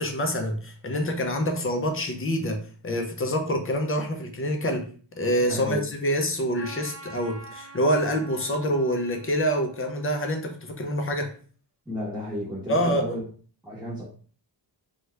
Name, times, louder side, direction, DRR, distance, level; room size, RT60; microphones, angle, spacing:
voice 1, 0.0-4.9 5.2-11.3 12.7-13.1, equal, 30° left, 0.5 m, -26 dB
voice 2, 5.4-5.8 11.9-13.2 13.6-14.0, equal, 5° right, 0.9 m, -32 dB
Trumpet, 6.5-11.2, right 3 dB, 35° right, 0.5 m, -47 dB
2.7 x 2.3 x 3.2 m
wide cardioid pair, 170°, 47 cm